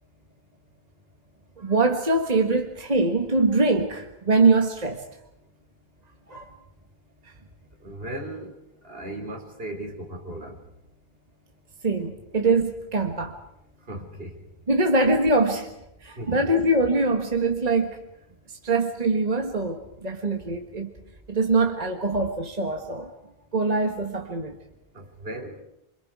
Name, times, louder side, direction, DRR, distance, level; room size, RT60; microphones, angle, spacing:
voice 1, 1.6-5.0 6.3-6.5 11.8-13.3 14.7-15.7 16.0-18.0 18.5-20.9 21.3-23.1 23.5-24.6, right 3 dB, 40° right, 4 dB, 1.6 m, -23 dB
voice 2, 7.8-8.6 8.8-10.6 13.9-14.4 16.2-16.5 24.9-25.6, right 1 dB, 70° right, 2 dB, 3.9 m, -36 dB
28.0 x 26.5 x 4.8 m, 0.83 s
omnidirectional pair, 1.0 m